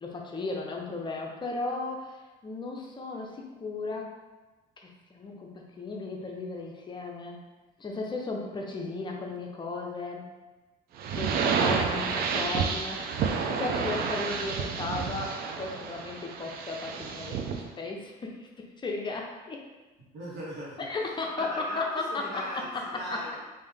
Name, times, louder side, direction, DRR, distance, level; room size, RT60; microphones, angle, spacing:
voice 1, 0.0-4.2 4.8-7.4 7.8-10.3 11.1-17.4 17.8-19.7 20.9-22.8 23.1-23.2, left 3 dB, 25° left, 0 dB, 0.6 m, -35 dB
sound 1, 11.0-17.7, right 6 dB, 65° right, 0.4 m, -30 dB
voice 2, 20.1-20.9 21.4-22.7 22.9-23.4, equal, 90° right, -6 dB, 1.3 m, -38 dB
3.5 x 2.7 x 3.5 m, 1.2 s
cardioid pair, 110°, 17 cm